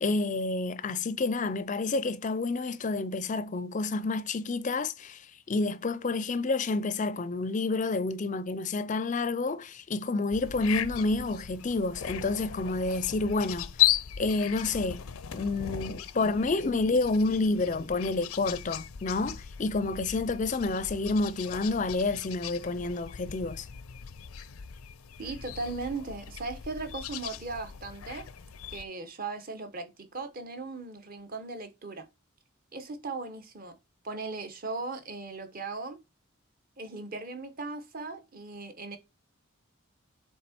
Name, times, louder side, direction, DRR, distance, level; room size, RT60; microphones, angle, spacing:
voice 1, 0.0-13.7 14.2-15.1 15.3-23.7, left 3 dB, 35° left, 0.5 m, -29 dB
sound 1, 10.3-28.8, left 12 dB, 85° left, 0.5 m, -36 dB
voice 2, 25.2-28.3 28.7-32.0 32.7-33.8 34.0-36.0 36.8-39.0, right 3 dB, 40° right, 1.1 m, -38 dB
7.5 x 3.6 x 4.3 m
head